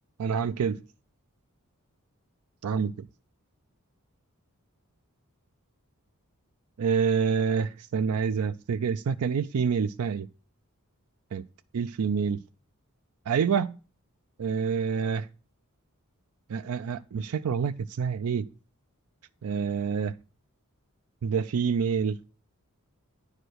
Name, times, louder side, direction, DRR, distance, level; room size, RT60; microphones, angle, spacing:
voice 1, 0.2-0.8 2.6-3.1 6.8-10.3 11.3-11.4 11.7-12.4 13.3-13.7 14.4-15.3 16.5-18.5 19.4-20.1 21.2-22.2, right 6 dB, 80° right, 0.4 m, -27 dB
9.8 x 4.9 x 6.2 m
head